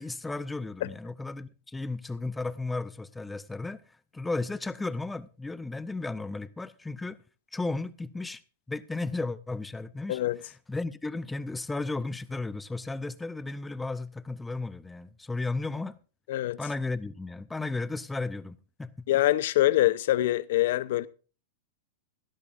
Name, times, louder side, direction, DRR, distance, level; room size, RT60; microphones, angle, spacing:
voice 1, 0.0-3.8 4.1-7.2 7.5-8.4 8.7-10.2 10.7-16.0 16.6-19.1, left 3 dB, 5° left, 0.6 m, -34 dB
voice 2, 19.1-21.1, left 15 dB, 60° left, 0.7 m, -24 dB
16.5 x 12.0 x 2.5 m
supercardioid pair, 150°, 0 cm